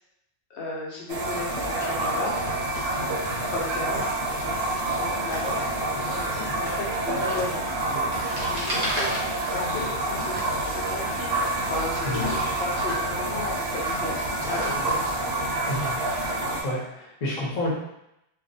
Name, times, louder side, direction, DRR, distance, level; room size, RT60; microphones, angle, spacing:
voice 1, 0.5-2.4 3.4-4.6 4.8-7.8 8.0-9.1 9.5-11.3 11.6-15.0, left 2 dB, 75° left, -4 dB, 0.8 m, -35 dB
sound 1, 1.1-16.6, right 2 dB, 70° right, 0.8 m, -28 dB
sound 2, 1.8-2.3 2.7-3.3 3.7-3.8 4.0-5.1 5.3-5.6 6.1-10.6 11.4-12.3 12.9-13.6 14.1-15.2, left 1 dB, 15° left, 0.5 m, -41 dB
sound 3, 8.2-10.3 10.5-12.7, equal, 45° right, 0.7 m, -33 dB
voice 2, 12.0-12.4 15.7-16.0 16.6-17.7, left 1 dB, 45° left, -5 dB, 0.7 m, -30 dB
2.4 x 2.1 x 2.5 m, 0.82 s
omnidirectional pair, 1.1 m